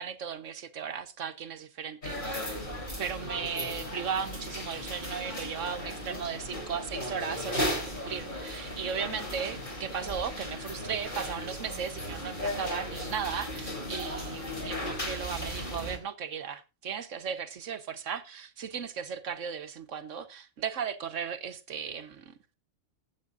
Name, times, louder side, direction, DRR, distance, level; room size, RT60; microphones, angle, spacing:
voice 1, 0.0-2.6 3.0-22.6, right 7 dB, 80° right, 1.4 m, -36 dB
sound 1, 2.0-16.0, left 1 dB, 40° left, 3.9 m, -36 dB
21.0 x 8.5 x 2.6 m
omnidirectional pair, 1.3 m